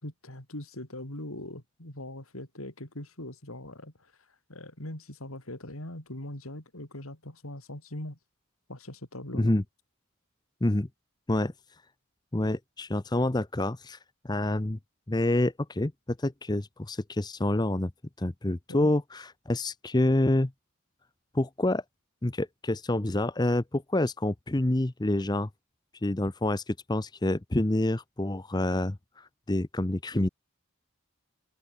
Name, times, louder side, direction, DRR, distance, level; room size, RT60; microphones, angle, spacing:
voice 1, 0.0-4.1 4.5-8.2 8.7-9.5 18.7-18.9, left 1 dB, 80° left, 5.0 m, -41 dB
voice 2, 9.3-9.6 10.6-10.9 11.3-11.5 12.3-14.0 14.2-14.8 15.1-15.9 16.2-17.9 18.2-20.5 21.3-21.8 22.2-25.5 26.0-30.3, left 1 dB, 20° left, 0.7 m, -27 dB
open air
head